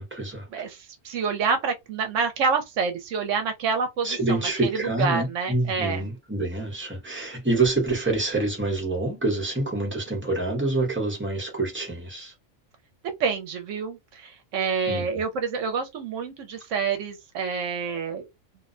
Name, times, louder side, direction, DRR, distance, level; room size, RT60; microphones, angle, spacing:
voice 1, 0.0-0.5 4.0-12.3 14.9-15.1, right 2 dB, 10° right, 0.7 m, -27 dB
voice 2, 0.5-4.7 5.0-6.0 13.2-18.3, right 5 dB, 75° right, 0.9 m, -27 dB
2.6 x 2.1 x 2.5 m
omnidirectional pair, 1.4 m